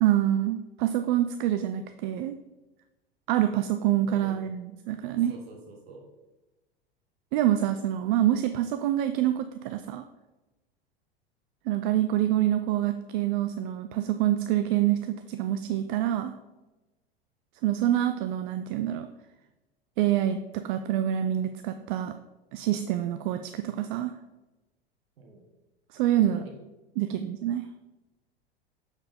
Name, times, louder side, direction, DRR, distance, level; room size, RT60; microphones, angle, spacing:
voice 1, 0.0-2.4 3.3-5.3 7.3-10.0 11.7-16.3 17.6-19.1 20.0-22.1 22.5-24.1 25.9-26.4 27.0-27.7, right 12 dB, 55° right, 9 dB, 0.5 m, -26 dB
voice 2, 4.1-4.4 5.3-6.1 25.2-25.4 26.1-26.5 27.0-27.1, right 3 dB, 75° right, 1 dB, 1.6 m, -47 dB
7.5 x 4.8 x 3.6 m, 1.1 s
hypercardioid pair, 90°, 31 cm